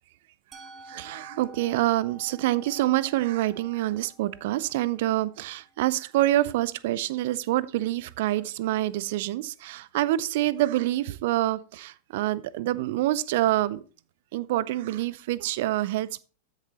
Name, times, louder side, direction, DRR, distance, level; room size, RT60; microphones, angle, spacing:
Musical instrument, 0.5-6.4, right 2 dB, 25° right, 1.2 m, -51 dB
voice 1, 0.9-13.8 14.3-16.2, right 15 dB, 50° right, 19 dB, 0.5 m, -26 dB
13.0 x 6.8 x 3.0 m, 0.37 s
figure-of-eight pair, 90°, 0 cm